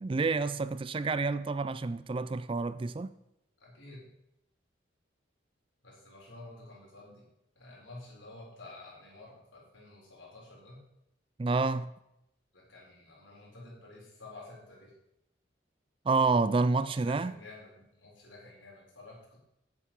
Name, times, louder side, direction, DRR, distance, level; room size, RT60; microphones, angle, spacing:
voice 1, 0.0-3.1 11.4-11.9 16.1-17.3, right 3 dB, 30° right, 0.4 m, -28 dB
voice 2, 3.6-4.1 5.8-7.3 7.6-10.8 12.5-14.9 16.8-19.4, left 2 dB, 85° left, 4.3 m, -50 dB
9.8 x 7.8 x 5.9 m
head